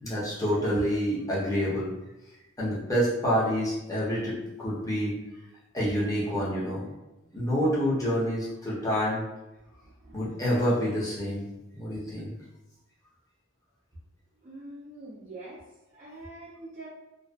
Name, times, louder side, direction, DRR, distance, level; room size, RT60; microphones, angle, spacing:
voice 1, 0.0-1.9 2.6-5.2 5.7-6.9 7.3-9.2 10.1-11.5 11.7-12.3, equal, 15° left, -7 dB, 0.7 m, -27 dB
voice 2, 14.4-16.9, right 2 dB, 35° right, -6 dB, 0.4 m, -45 dB
2.5 x 2.3 x 2.2 m, 0.97 s
head